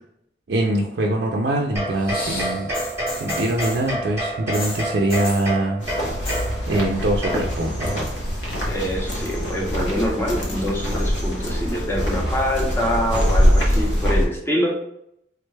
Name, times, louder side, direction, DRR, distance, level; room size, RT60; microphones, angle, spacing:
voice 1, 0.5-2.7 3.2-5.8 6.7-8.0, right 1 dB, 65° right, -1 dB, 0.4 m, -23 dB
sound 1, 1.7-8.3, right 1 dB, 15° right, 0.9 m, -29 dB
sound 2, 1.9-3.9 4.5-5.5 6.1-6.5 6.8-7.3 7.6-8.4 9.2-9.3, left 2 dB, 55° left, 0.8 m, -34 dB
sound 3, 5.8-14.3, equal, 85° left, 0.8 m, -23 dB
voice 2, 8.6-14.7, equal, 15° left, -2 dB, 0.6 m, -25 dB
3.5 x 2.2 x 3.2 m, 0.76 s
head